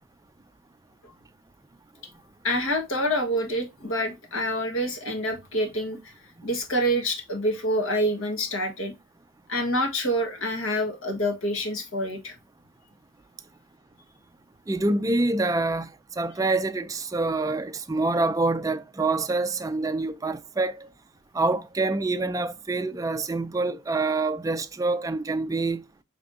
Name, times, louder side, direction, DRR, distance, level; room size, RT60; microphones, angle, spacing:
voice 1, 2.4-6.1 6.4-8.9 9.5-12.3, equal, 80° left, 1.4 m, -27 dB
voice 2, 14.7-15.9 16.2-20.9 21.3-25.8, right 2 dB, 15° right, 0.3 m, -26 dB
6.1 x 3.3 x 2.6 m
head